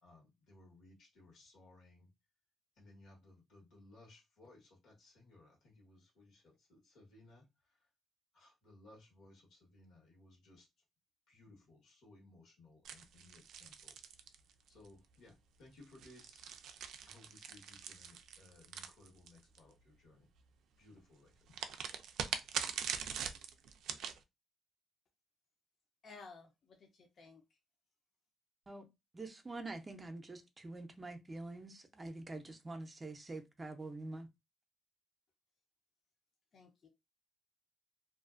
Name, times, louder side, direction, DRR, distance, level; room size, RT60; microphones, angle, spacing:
voice 1, 0.0-2.1 2.8-7.4 8.3-10.7 11.3-13.9 14.7-16.5 17.1-20.3 20.8-21.3, left 2 dB, 80° left, 1.2 m, -61 dB
sound 1, 12.8-14.9 15.8-19.6 21.5-24.2, right 8 dB, 80° right, 0.3 m, -42 dB
voice 2, 26.0-26.5 27.2-27.4 36.5-36.9, left 4 dB, 50° left, 0.6 m, -53 dB
voice 3, 29.1-34.3, right 2 dB, 25° right, 0.5 m, -46 dB
2.5 x 2.3 x 2.4 m
cardioid pair, 90°, 0 cm